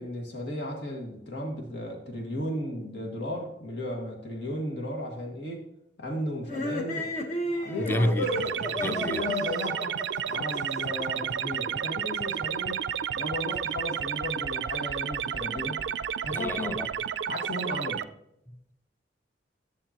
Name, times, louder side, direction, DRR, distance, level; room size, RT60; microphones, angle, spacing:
voice 1, 0.0-5.6 6.0-7.1 7.4-8.2 8.8-10.0 10.3-12.8 13.1-15.8 16.2-16.8 17.3-18.0, left 1 dB, 70° left, 1.9 m, -35 dB
sound 1, 6.4-11.1, left 1 dB, 45° left, 1.2 m, -33 dB
voice 2, 7.8-9.3 16.3-16.9, equal, 10° left, 0.6 m, -30 dB
sound 2, 8.3-18.0, right 8 dB, 80° right, 0.4 m, -31 dB
11.0 x 6.8 x 2.9 m
head